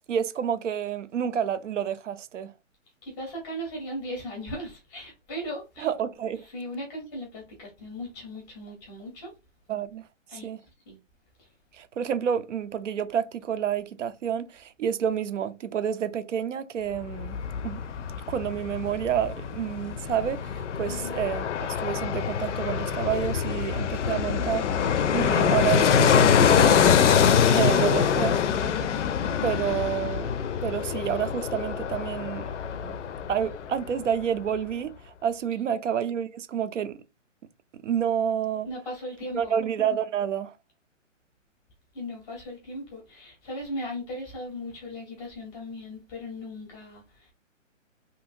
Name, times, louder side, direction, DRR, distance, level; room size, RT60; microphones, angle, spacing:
voice 1, 0.1-2.5 5.8-6.4 9.7-10.1 10.3-10.6 11.7-17.4 17.6-17.8 18.3-26.8 27.5-28.4 29.4-30.3 30.6-32.4 32.8-33.0 33.3-37.0 37.8-38.7 39.3-40.5, right 9 dB, 65° right, 0.6 m, -29 dB
voice 2, 3.0-5.9 6.4-9.3 10.3-10.5 10.9-11.0 11.4-11.5 20.8-21.1 35.7-35.8 38.7-39.6 41.9-47.3, equal, 10° left, 0.6 m, -37 dB
Fixed-wing aircraft airplane, 16.9-33.9 34.2-34.3, left 7 dB, 65° left, 0.5 m, -24 dB
2.7 x 2.6 x 2.6 m
hypercardioid pair, 150°, 39 cm